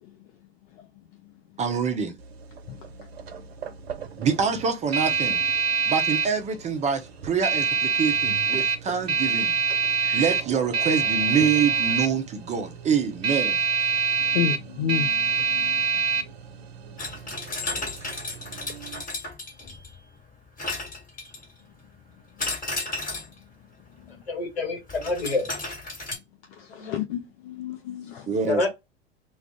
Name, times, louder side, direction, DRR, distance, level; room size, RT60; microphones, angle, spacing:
voice 1, 1.6-2.2 4.2-5.4 5.9-9.6 10.1-13.6 17.7-17.9 28.3-28.7, right 6 dB, 25° right, 0.5 m, -26 dB
sound 1, 2.2-19.0, right 5 dB, 80° right, 0.6 m, -26 dB
voice 2, 2.7-3.1 3.4-3.8 4.2-4.3 8.9-9.0 10.0-10.2 14.2-16.3 23.9-24.2 26.5-28.3, left 9 dB, 55° left, 0.6 m, -33 dB
sound 2, 17.0-20.0 20.6-21.6 22.4-23.4 24.9-26.1, left 2 dB, 25° left, 1.6 m, -33 dB
voice 3, 24.3-25.5 26.7-27.0 28.5-28.7, left 3 dB, 80° left, 1.2 m, -27 dB
2.4 x 2.3 x 3.4 m
figure-of-eight pair, 85°, 31 cm